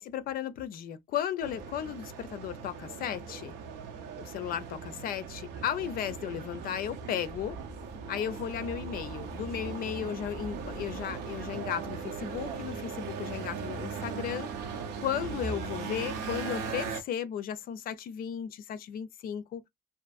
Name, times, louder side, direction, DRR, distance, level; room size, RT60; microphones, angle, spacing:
voice 1, 0.0-3.6 4.2-7.6 8.1-19.6, left 9 dB, 60° left, 0.4 m, -35 dB
sound 1, 1.4-17.0, right 5 dB, 85° right, 0.6 m, -39 dB
sound 2, 7.2-13.3, right 2 dB, 15° right, 0.5 m, -50 dB
2.6 x 2.5 x 2.3 m
cardioid pair, 110°, 17 cm